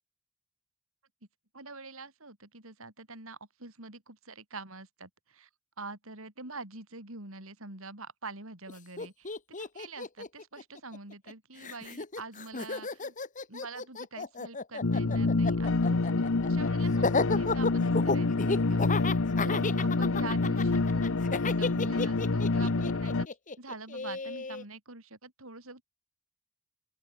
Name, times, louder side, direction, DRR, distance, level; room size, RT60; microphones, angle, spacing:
voice 1, 1.5-5.5 5.8-13.2 13.5-18.8 19.4-21.0 21.6-23.3 23.6-25.8, right 3 dB, 65° right, 5.1 m, -45 dB
Laughter, 8.7-8.8 9.0-11.3 11.6-24.6, left 3 dB, 35° left, 1.6 m, -33 dB
sound 1, 14.8-23.3, left 3 dB, 65° left, 0.9 m, -27 dB
open air
head